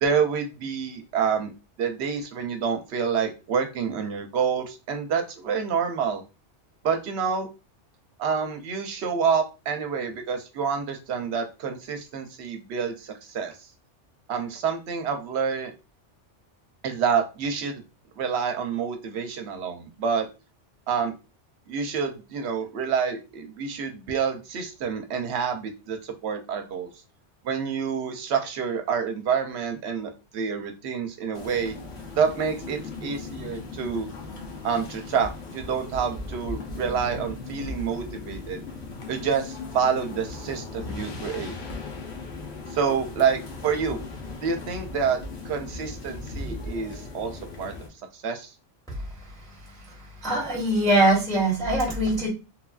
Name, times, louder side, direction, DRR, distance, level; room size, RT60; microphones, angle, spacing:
voice 1, 0.0-1.5 1.8-6.2 6.8-7.5 8.2-13.6 14.3-15.7 16.8-17.8 18.2-20.3 20.9-21.1 21.7-26.9 27.4-31.7 32.2-34.1 34.6-38.6 39.1-41.6 42.7-44.0 44.4-45.2 45.4-47.7 48.1-48.5, right 6 dB, 70° right, 6 dB, 0.8 m, -28 dB
sound 1, 31.3-47.9, left 3 dB, 65° left, 1.0 m, -38 dB
voice 2, 50.2-52.3, right 1 dB, 5° left, -5 dB, 0.9 m, -22 dB
3.1 x 2.4 x 2.3 m, 0.29 s
omnidirectional pair, 1.2 m